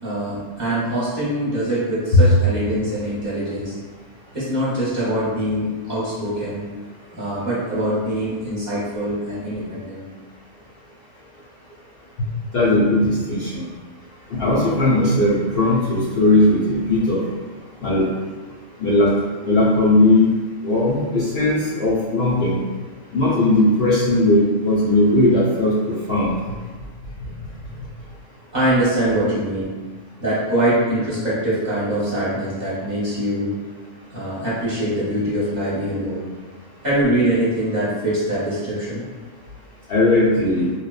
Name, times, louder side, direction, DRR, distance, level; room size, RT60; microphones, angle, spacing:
voice 1, 0.0-3.7 4.3-6.6 7.1-10.0 28.5-29.7 30.2-33.5 34.1-36.2 36.8-39.0, right 1 dB, 40° right, -10 dB, 0.8 m, -23 dB
voice 2, 12.5-13.6 14.3-17.2 17.8-18.0 18.8-19.1 19.4-20.3 20.6-22.6 23.1-26.3 39.9-40.7, left 2 dB, 60° left, -7 dB, 0.7 m, -18 dB
3.0 x 2.1 x 2.3 m, 1.3 s
omnidirectional pair, 1.3 m